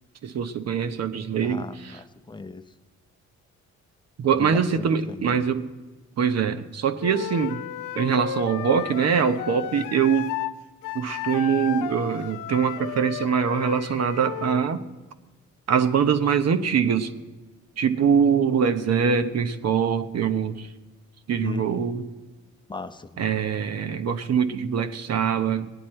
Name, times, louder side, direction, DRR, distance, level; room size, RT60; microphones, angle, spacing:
voice 1, 0.2-1.9 4.2-5.7 6.2-7.6 7.9-10.3 10.9-14.8 15.7-17.1 17.8-20.7 21.3-22.1 23.2-25.7, right 7 dB, 55° right, 9 dB, 1.0 m, -23 dB
voice 2, 1.4-2.6 4.3-5.4 21.4-21.6 22.7-23.2, left 3 dB, 15° left, 9 dB, 0.7 m, -36 dB
Wind instrument woodwind instrument, 7.0-10.5 10.8-14.6, left 10 dB, 90° left, 0.6 m, -33 dB
18.5 x 9.5 x 4.4 m, 1.2 s
cardioid pair, 90°, 30 cm